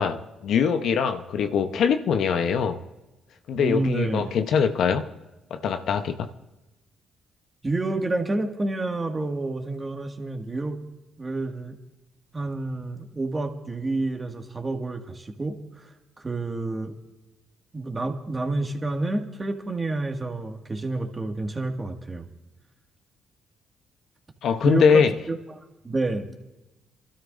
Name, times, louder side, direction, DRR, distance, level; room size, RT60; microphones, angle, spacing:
voice 1, 0.0-2.8 3.5-5.1 5.5-6.3 24.4-25.1, left 6 dB, 70° left, 0.8 m, -22 dB
voice 2, 3.6-4.3 7.6-10.8 11.2-11.8 12.3-15.9 16.2-16.9 17.7-22.3 24.6-26.3, right 2 dB, 30° right, 1.9 m, -29 dB
28.0 x 13.0 x 2.6 m
supercardioid pair, 55°, 0 cm